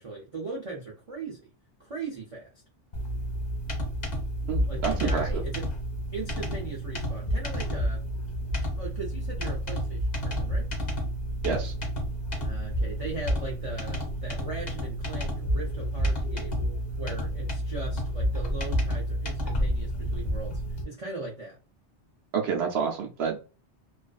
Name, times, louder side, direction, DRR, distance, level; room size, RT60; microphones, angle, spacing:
voice 1, 0.0-1.5 1.8-2.5 4.7-5.7 6.1-8.1 8.7-10.7 12.4-16.7 17.0-21.6, right 3 dB, 45° right, 0.4 m, -39 dB
sound 1, 2.9-20.8, equal, 45° left, 0.8 m, -30 dB
voice 2, 4.5-5.2 11.4-11.7 22.3-23.4, right 6 dB, 70° right, 0.8 m, -28 dB
2.4 x 2.4 x 2.3 m
omnidirectional pair, 1.2 m